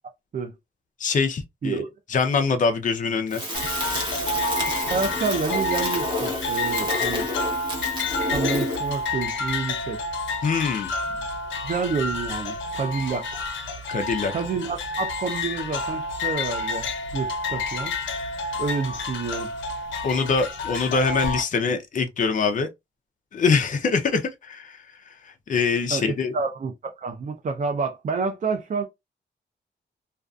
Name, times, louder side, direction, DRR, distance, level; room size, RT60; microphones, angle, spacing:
voice 1, 1.0-1.8 2.1-3.4 10.4-10.9 13.9-14.3 20.0-22.7 23.3-24.8 25.5-26.3, left 5 dB, 40° left, 0.5 m, -23 dB
Crackle, 3.3-9.0, left 1 dB, 25° right, 1.1 m, -30 dB
sound 1, 3.5-21.4, left 3 dB, 85° left, 0.6 m, -29 dB
voice 2, 4.9-7.3 8.3-10.0 11.1-11.2 11.6-13.4 14.3-17.9 18.6-19.5 25.9-28.8, right 4 dB, 45° right, 0.5 m, -29 dB
2.5 x 2.3 x 2.3 m
cardioid pair, 85°, 19 cm